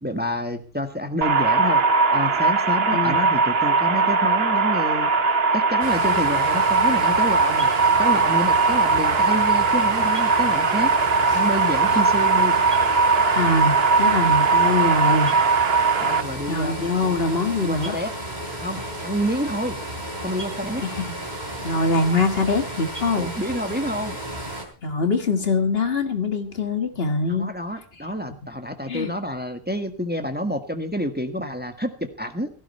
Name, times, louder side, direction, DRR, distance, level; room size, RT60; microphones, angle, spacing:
voice 1, 0.0-1.8 2.1-5.1 5.5-7.7 8.0-10.9 11.3-12.6 16.0-17.0 17.6-18.1 18.6-19.8 20.2-20.8 23.2-24.2 27.3-32.5, equal, 10° right, 7 dB, 1.5 m, -28 dB
sound 1, 1.2-16.2, right 4 dB, 75° right, 1.2 m, -20 dB
voice 2, 2.9-3.2 13.3-15.3 16.5-18.0 21.0-21.1 21.6-23.3 24.8-27.5 28.9-29.1, left 3 dB, 70° left, 7 dB, 2.1 m, -23 dB
sound 2, 5.8-24.6, right 1 dB, 45° right, 3.7 m, -33 dB
17.0 x 15.0 x 4.4 m, 0.35 s
omnidirectional pair, 1.0 m